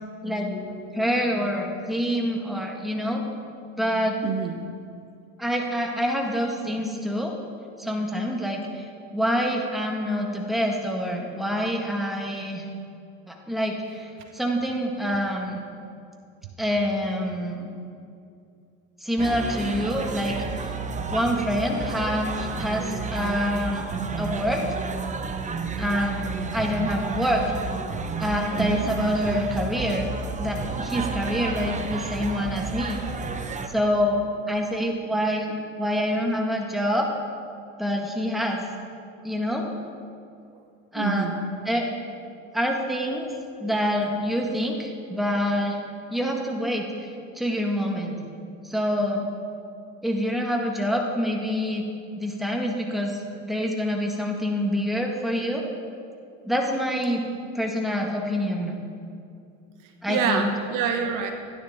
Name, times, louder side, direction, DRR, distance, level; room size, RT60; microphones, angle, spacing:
voice 1, 0.2-3.2 3.8-4.2 5.4-7.3 7.8-12.6 13.3-15.6 16.6-17.7 19.0-20.7 21.1-24.6 25.8-26.3 26.5-27.4 28.2-30.1 30.4-33.0 33.7-37.1 37.8-38.6 39.2-39.7 40.9-41.3 41.6-41.9 42.5-43.3 43.6-45.8 46.1-46.8 47.3-48.2 48.6-49.3 50.0-51.8 52.2-55.6 56.4-57.2 57.5-58.7 60.0-60.5, equal, ahead, 0 dB, 1.6 m, -26 dB
voice 2, 4.2-4.6 25.4-25.5 28.5-28.9 40.9-41.4 60.1-61.3, right 6 dB, 50° right, 5 dB, 1.2 m, -26 dB
sound 1, 19.2-33.7, right 4 dB, 20° right, 0.9 m, -31 dB
16.0 x 10.0 x 3.6 m, 2.5 s
hypercardioid pair, 95°, 39 cm